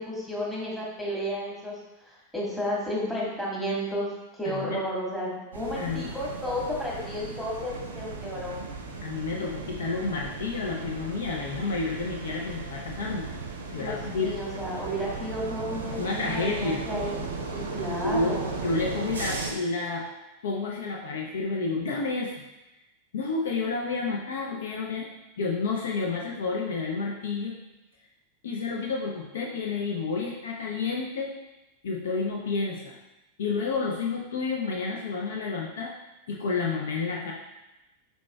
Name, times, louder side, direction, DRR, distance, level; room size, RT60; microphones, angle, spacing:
voice 1, 0.0-1.8 2.1-4.1 4.4-8.6 13.7-18.6, equal, 5° left, -6 dB, 1.4 m, -32 dB
voice 2, 4.4-4.8 5.8-6.1 9.0-13.3 13.7-14.3 16.0-16.8 18.0-20.1 20.4-22.3 23.1-25.1 25.4-27.6 28.4-31.3 31.8-33.0 33.4-35.9 36.3-37.3, left 4 dB, 60° left, -1 dB, 0.5 m, -30 dB
sound 1, 5.5-19.5, right 3 dB, 70° right, 0.6 m, -36 dB
5.1 x 4.1 x 2.2 m, 0.99 s
figure-of-eight pair, 90°, 0 cm